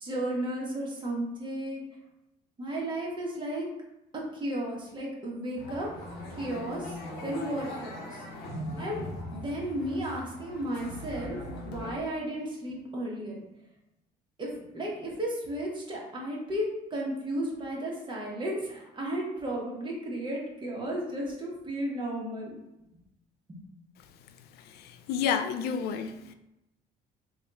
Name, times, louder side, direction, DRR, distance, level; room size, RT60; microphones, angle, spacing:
voice 1, 0.0-1.8 2.6-3.7 4.1-5.9 6.4-6.9 7.2-8.2 8.8-13.4 14.4-22.5 23.5-23.6, right 1 dB, 30° right, 1.1 m, -34 dB
sound 1, 5.5-12.0, left 1 dB, 90° left, 0.9 m, -40 dB
voice 2, 24.8-26.3, left 7 dB, 70° left, 0.4 m, -30 dB
3.5 x 2.4 x 3.9 m
cardioid pair, 110°, 17 cm